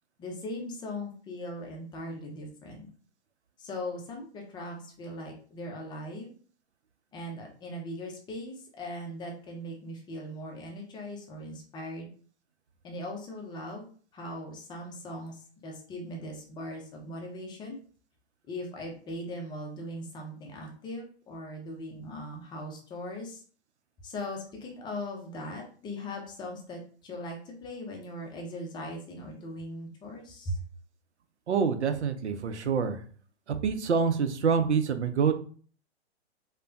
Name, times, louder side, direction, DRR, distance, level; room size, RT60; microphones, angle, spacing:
voice 1, 0.2-2.9 3.6-6.3 7.1-12.1 12.8-13.9 14.1-17.8 18.5-23.4 24.0-30.6, left 1 dB, 15° left, 1 dB, 0.5 m, -39 dB
voice 2, 31.5-33.0 33.5-35.3, right 6 dB, 85° right, 8 dB, 0.6 m, -26 dB
3.3 x 2.1 x 2.6 m, 0.44 s
hypercardioid pair, 120°, 34 cm